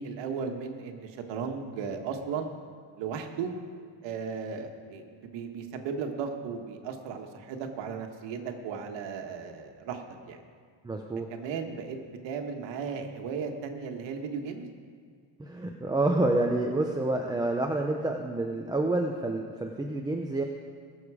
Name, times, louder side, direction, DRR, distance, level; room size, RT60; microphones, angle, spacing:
voice 1, 0.0-2.5 3.0-3.5 4.0-10.4 11.3-12.0 12.2-14.6, right 6 dB, 70° right, 4 dB, 1.6 m, -36 dB
voice 2, 10.8-11.3 15.4-20.4, right 2 dB, 10° right, 1 dB, 0.6 m, -28 dB
20.5 x 7.1 x 4.9 m, 2.1 s
cardioid pair, 140°, 45 cm